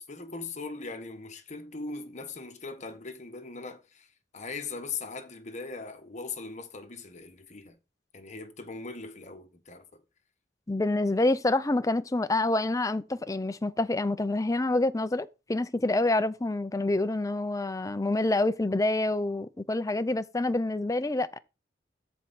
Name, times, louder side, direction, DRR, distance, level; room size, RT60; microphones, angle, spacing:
voice 1, 0.0-7.8 8.1-10.0, left 4 dB, 40° left, 1.2 m, -40 dB
voice 2, 10.7-21.4, left 2 dB, 20° left, 0.5 m, -27 dB
13.5 x 4.6 x 4.2 m
head